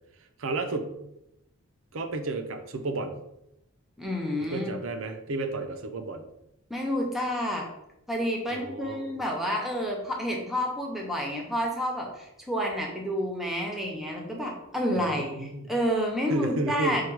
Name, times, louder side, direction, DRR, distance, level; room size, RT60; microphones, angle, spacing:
voice 1, 0.4-1.0 1.9-3.2 4.4-6.3 8.5-9.1 14.9-15.7 16.3-17.0, right 2 dB, 60° right, 7 dB, 0.5 m, -32 dB
voice 2, 4.0-4.7 6.7-7.7 8.1-17.0, equal, ahead, -1 dB, 0.7 m, -29 dB
4.7 x 2.3 x 4.6 m, 0.85 s
head